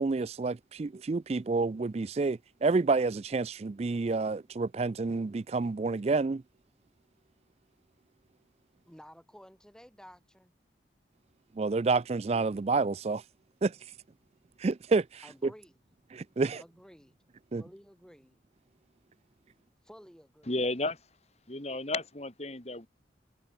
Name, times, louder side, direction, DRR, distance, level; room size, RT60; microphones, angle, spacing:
voice 1, 0.0-6.4 11.6-13.2 13.6-13.8 14.6-15.5 16.1-16.6 17.5-17.6, right 3 dB, 35° right, 0.4 m, -29 dB
voice 2, 8.9-10.5 15.2-15.8 16.5-17.2 17.6-18.4 19.8-20.5, equal, 5° left, 4.4 m, -53 dB
voice 3, 20.5-21.0 21.5-22.9, left 2 dB, 35° left, 2.3 m, -33 dB
head